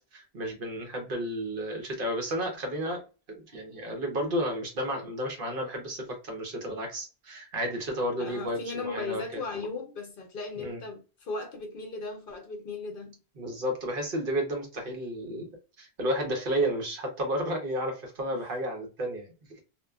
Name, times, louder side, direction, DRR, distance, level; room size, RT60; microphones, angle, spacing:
voice 1, 0.1-9.2 10.6-10.8 13.4-15.5 15.8-19.3, equal, 60° right, 1.0 m, -32 dB
voice 2, 8.2-13.2 18.3-18.5, left 3 dB, 60° left, 0.9 m, -37 dB
2.9 x 2.2 x 2.3 m
omnidirectional pair, 1.0 m